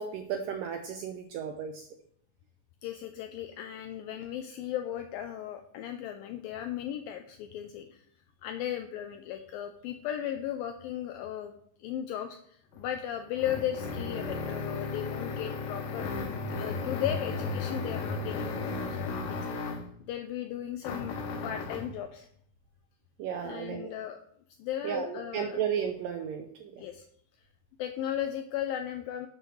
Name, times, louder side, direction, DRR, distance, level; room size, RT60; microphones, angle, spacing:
voice 1, 0.0-1.9 23.2-23.9 24.8-26.7, right 7 dB, 85° right, 4 dB, 2.0 m, -34 dB
voice 2, 2.8-8.0 8.4-19.6 20.0-21.2 21.4-22.3 23.4-24.2 24.6-25.6 26.8-27.1 27.8-29.3, left 10 dB, 90° left, 7 dB, 2.0 m, -36 dB
sound 1, 12.7-19.9 20.8-22.0, left 4 dB, 70° left, 2.3 m, -35 dB
11.5 x 7.7 x 3.2 m, 0.64 s
omnidirectional pair, 4.7 m